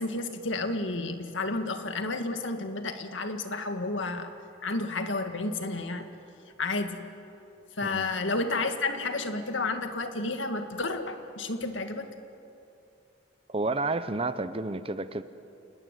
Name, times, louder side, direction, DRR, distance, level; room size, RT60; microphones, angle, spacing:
voice 1, 0.0-4.3 4.6-6.1 6.4-12.1, left 3 dB, 90° left, 7 dB, 2.0 m, -31 dB
voice 2, 13.5-15.2, right 2 dB, 30° right, 12 dB, 0.8 m, -30 dB
28.5 x 20.0 x 9.3 m, 2.7 s
head